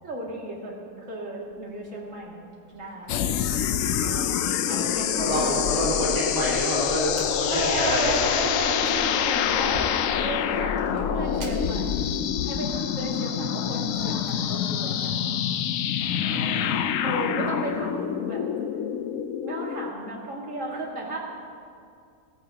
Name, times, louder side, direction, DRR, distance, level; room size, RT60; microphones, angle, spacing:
voice 1, 0.0-3.4 4.0-4.4 4.7-5.8 7.5-12.1 12.4-15.2 17.0-18.5 19.4-21.2, right 2 dB, 45° right, -4 dB, 2.7 m, -34 dB
Fire, 1.4-14.3, right 2 dB, 80° right, 2.7 m, -46 dB
sound 1, 3.1-19.9, left 9 dB, 70° left, 0.8 m, -26 dB
voice 2, 4.2-4.9 5.2-8.2 10.8-11.4 16.0-16.8, equal, 20° right, -8 dB, 2.2 m, -29 dB
19.5 x 15.0 x 2.9 m, 2.4 s
omnidirectional pair, 1.9 m